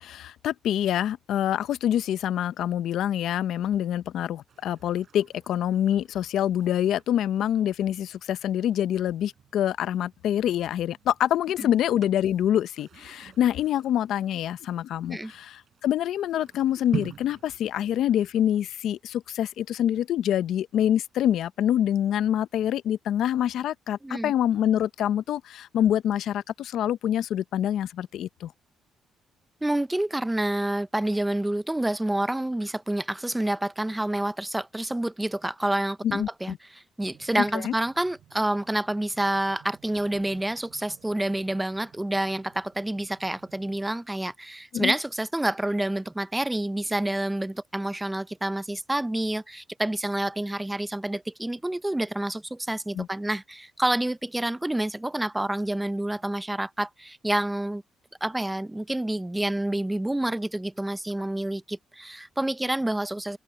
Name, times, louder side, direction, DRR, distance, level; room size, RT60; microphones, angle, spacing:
voice 1, 0.0-28.5 36.0-36.6 37.6-37.7 44.7-44.9 53.0-53.1, left 10 dB, 75° left, 0.6 m, -26 dB
sound 1, 4.5-18.7, right 8 dB, 50° right, 7.3 m, -45 dB
voice 2, 24.0-24.3 29.6-57.8 58.2-63.4, right 1 dB, 10° right, 0.5 m, -28 dB
sound 2, 37.0-43.8, right 12 dB, 75° right, 7.9 m, -57 dB
cardioid pair, 120°, 0 cm